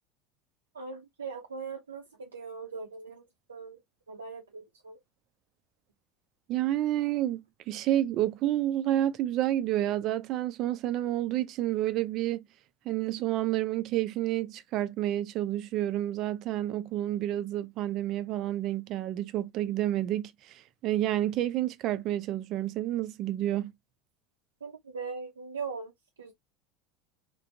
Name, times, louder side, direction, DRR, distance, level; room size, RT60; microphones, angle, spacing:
voice 1, 0.7-3.8 4.1-5.0 24.6-25.9 26.2-26.3, right 5 dB, 90° right, 0.7 m, -40 dB
voice 2, 6.5-12.4 12.9-23.7, right 13 dB, 50° right, 0.5 m, -29 dB
3.5 x 2.2 x 2.7 m
hypercardioid pair, 80°, 0 cm